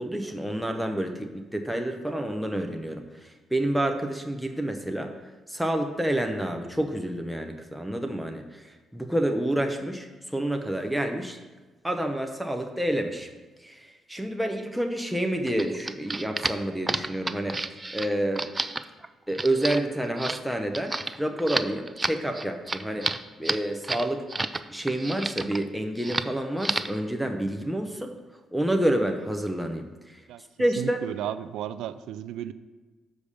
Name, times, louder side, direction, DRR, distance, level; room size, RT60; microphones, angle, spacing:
voice 1, 0.0-5.1 5.5-8.6 8.9-11.4 11.8-13.3 13.6-17.6 17.9-18.5 19.3-23.1 23.4-24.3 24.7-28.1 28.5-30.2 30.6-31.0, right 1 dB, ahead, 3 dB, 0.8 m, -28 dB
sound 1, 15.5-24.6 24.9-25.6 26.0-26.3 26.6-27.0, right 2 dB, 20° right, 0.4 m, -31 dB
voice 2, 30.8-32.5, right 11 dB, 90° right, 13 dB, 0.3 m, -34 dB
6.9 x 5.0 x 6.7 m, 1.3 s
cardioid pair, 90°, 0 cm